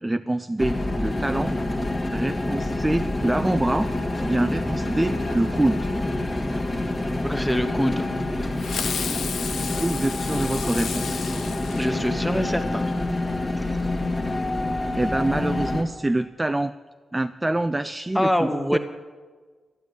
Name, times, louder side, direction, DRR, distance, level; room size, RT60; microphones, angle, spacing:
voice 1, 0.0-1.6 2.1-3.9 4.2-5.9 9.6-11.5 14.9-16.7 17.1-18.8, right 2 dB, 10° right, 11 dB, 0.3 m, -26 dB
sound 1, 0.6-15.8, left 2 dB, 25° left, 1.7 m, -27 dB
voice 2, 7.2-8.1 11.7-12.9 18.1-18.8, equal, 5° left, 8 dB, 1.1 m, -24 dB
Fireworks, 8.6-12.5, left 6 dB, 75° left, 1.0 m, -32 dB
12.5 x 12.0 x 8.2 m, 1.4 s
wide cardioid pair, 150°, 0 cm